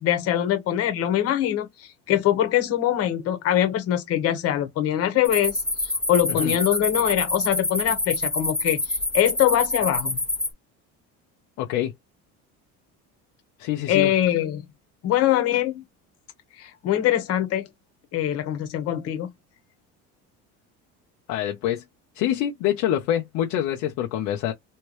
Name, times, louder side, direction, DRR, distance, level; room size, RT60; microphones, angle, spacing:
voice 1, 0.0-10.2 13.9-14.6 15.0-15.8 16.6-17.7 18.1-19.3, left 12 dB, 50° left, 1.2 m, -23 dB
sound 1, 5.2-10.5, left 2 dB, 5° left, 1.1 m, -27 dB
voice 2, 11.6-11.9 13.6-14.1 21.3-21.8 22.1-24.5, left 11 dB, 65° left, 0.8 m, -25 dB
3.2 x 3.2 x 3.1 m
cardioid pair, 160°, 31 cm